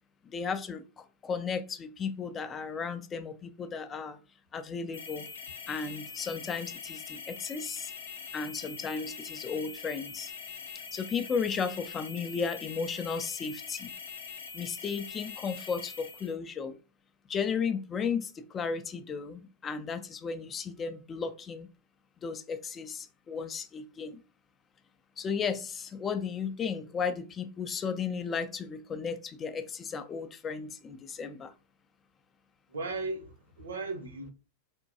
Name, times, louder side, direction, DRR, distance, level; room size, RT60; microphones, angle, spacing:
voice 1, 0.3-4.2 4.5-5.3 5.7-7.9 8.3-10.3 10.9-13.9 14.5-16.8 17.3-21.7 22.2-24.2 25.2-31.5, left 6 dB, 25° left, 0.3 m, -34 dB
sound 1, 4.9-16.3, left 5 dB, 70° left, 0.7 m, -43 dB
voice 2, 32.7-34.3, right 3 dB, 70° right, 0.8 m, -36 dB
3.4 x 2.2 x 2.7 m
figure-of-eight pair, 90°, 0 cm